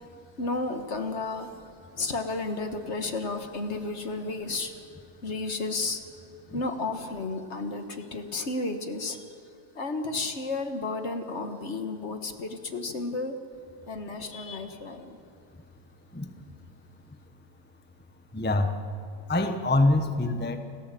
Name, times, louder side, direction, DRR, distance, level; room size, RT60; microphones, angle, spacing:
voice 1, 0.4-1.5 2.0-4.7 5.2-6.0 6.5-9.2 9.7-13.4 13.9-15.2, left 3 dB, 50° left, 7 dB, 1.6 m, -32 dB
voice 2, 16.1-16.5 18.3-18.8 19.3-20.6, left 2 dB, 10° left, 7 dB, 0.8 m, -25 dB
29.5 x 13.5 x 7.7 m, 2.4 s
omnidirectional pair, 1.6 m